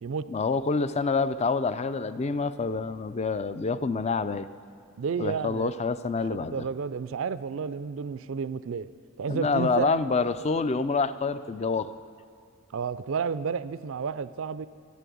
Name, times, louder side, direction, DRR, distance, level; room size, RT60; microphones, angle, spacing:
voice 1, 0.3-4.5 5.2-6.6 9.3-11.9, left 4 dB, 30° left, 13 dB, 0.4 m, -27 dB
voice 2, 5.0-5.7 6.3-8.9 9.2-9.9 12.7-14.7, right 6 dB, 65° right, 15 dB, 0.4 m, -31 dB
12.5 x 11.0 x 8.5 m, 2.3 s
head